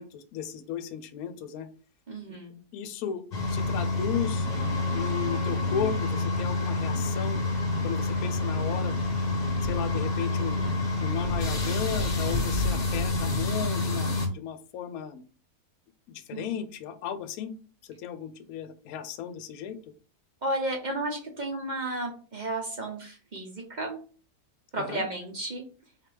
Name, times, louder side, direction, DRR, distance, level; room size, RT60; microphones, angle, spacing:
voice 1, 0.0-1.7 2.3-2.4 2.7-3.2 3.5-4.5 4.9-7.4 7.8-9.0 9.6-10.6 11.0-15.2 16.1-17.5 17.8-19.8 24.8-25.0, left 8 dB, 75° left, 10 dB, 1.0 m, -35 dB
voice 2, 2.1-2.6 10.5-10.8 16.3-16.5 20.4-24.0 24.7-25.6, right 2 dB, 40° right, 1 dB, 0.6 m, -33 dB
sound 1, 3.3-14.3, left 2 dB, 35° left, 0.9 m, -28 dB
4.2 x 3.3 x 3.3 m, 0.40 s
omnidirectional pair, 1.7 m